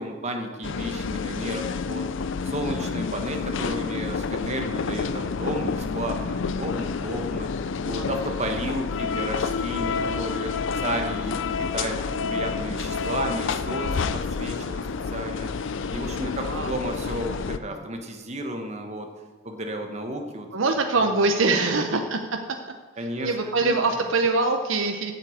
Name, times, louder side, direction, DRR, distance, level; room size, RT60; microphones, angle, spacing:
voice 1, 0.0-2.0 2.4-7.5 7.8-11.4 11.7-12.0 12.3-14.8 15.1-15.5 15.9-19.1 19.4-20.5 20.9-21.0 21.6-21.9 23.0-23.8, right 1 dB, 35° right, 3 dB, 1.3 m, -32 dB
sound 1, 0.6-17.6, left 5 dB, 60° left, 0.4 m, -29 dB
voice 2, 16.4-16.8 17.7-17.8 20.5-22.4 23.0-25.1, right 3 dB, 65° right, 5 dB, 0.7 m, -24 dB
8.5 x 6.8 x 7.9 m, 1.3 s
head